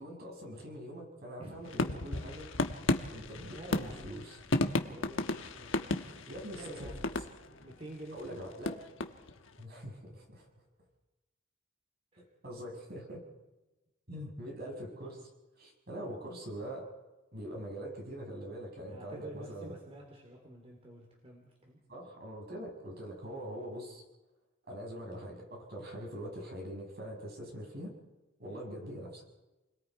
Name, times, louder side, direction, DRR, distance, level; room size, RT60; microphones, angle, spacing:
voice 1, 0.0-2.5 3.1-4.4 6.2-7.1 8.1-8.7 9.6-10.5 12.2-13.2 14.1-15.3 15.6-16.9 17.3-19.8 21.9-24.0 24.7-27.9 28.4-29.2, equal, 55° right, 0 dB, 6.7 m, -43 dB
sound 1, 1.6-7.7 8.1-9.5, left 2 dB, 80° left, 1.3 m, -34 dB
voice 2, 3.5-4.1 4.7-5.9 6.6-7.0 7.5-8.4 12.1-12.2 18.8-21.8 28.5-28.7, right 1 dB, 30° right, 0 dB, 3.4 m, -49 dB
29.5 x 21.5 x 4.8 m, 1.1 s
head